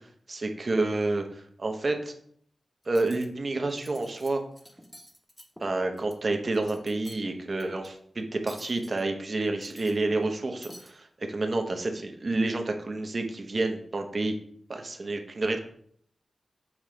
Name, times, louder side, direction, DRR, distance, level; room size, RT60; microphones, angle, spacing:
voice 1, 0.3-2.1 2.9-4.4 5.6-14.4 14.7-15.6, right 2 dB, 45° right, 4 dB, 0.9 m, -29 dB
Cutlery silverware, 2.8-3.3 3.7-4.3 4.6-6.2 6.5-7.2 7.6-7.9 8.5-9.0 9.5-10.3 10.6-10.9, equal, 5° left, 0.9 m, -49 dB
7.3 x 3.1 x 4.9 m, 0.63 s
wide cardioid pair, 125°, 0 cm